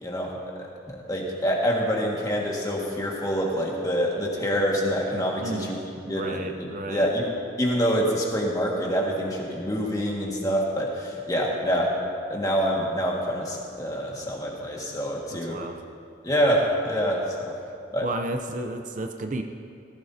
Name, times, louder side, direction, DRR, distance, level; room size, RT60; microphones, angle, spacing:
voice 1, 0.0-5.8 6.1-7.3 7.6-12.0 12.3-15.6 16.2-17.5 17.9-18.1, equal, 20° left, -2 dB, 1.8 m, -26 dB
voice 2, 5.4-7.1 15.3-15.8 18.0-19.4, right 1 dB, 40° right, 5 dB, 0.6 m, -33 dB
18.5 x 15.5 x 2.8 m, 2.7 s
head